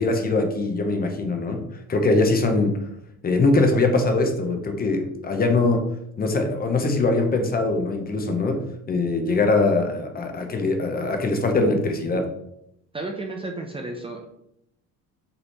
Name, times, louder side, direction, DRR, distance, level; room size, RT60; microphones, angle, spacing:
voice 1, 0.0-1.6 1.9-2.8 3.2-5.8 6.2-12.3, left 3 dB, 30° left, 5 dB, 0.9 m, -22 dB
voice 2, 12.9-14.2, right 2 dB, 15° right, 3 dB, 0.6 m, -32 dB
5.4 x 4.1 x 4.2 m, 0.77 s
cardioid pair, 135°, 33 cm